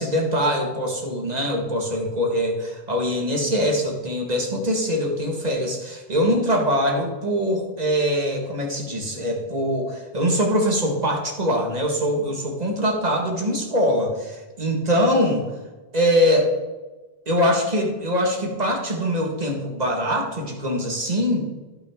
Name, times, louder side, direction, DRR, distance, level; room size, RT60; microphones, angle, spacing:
voice 1, 0.0-15.5 15.9-16.5 17.3-21.5, equal, 40° right, 0 dB, 1.9 m, -23 dB
14.5 x 6.2 x 3.7 m, 1.2 s
omnidirectional pair, 1.1 m